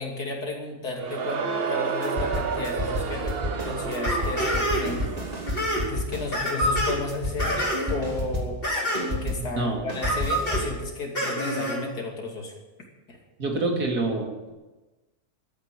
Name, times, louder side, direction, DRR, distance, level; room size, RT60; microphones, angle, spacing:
voice 1, 0.0-5.5 5.8-8.6 9.1-12.6 13.1-13.2, left 3 dB, 85° left, 0 dB, 3.3 m, -33 dB
Crowd, 0.9-5.9, right 5 dB, 45° right, 1.0 m, -31 dB
sound 1, 2.0-8.7 8.9-10.8, left 1 dB, 25° right, 2.1 m, -32 dB
sound 2, 4.0-5.0 5.3-5.8 6.3-7.0 7.4-8.0 8.6-9.2 10.0-10.6 11.1-11.8, equal, 35° left, 5.0 m, -26 dB
voice 2, 13.4-14.5, right 2 dB, 85° right, 1 dB, 3.1 m, -26 dB
13.0 x 9.6 x 9.1 m, 1.1 s
omnidirectional pair, 1.6 m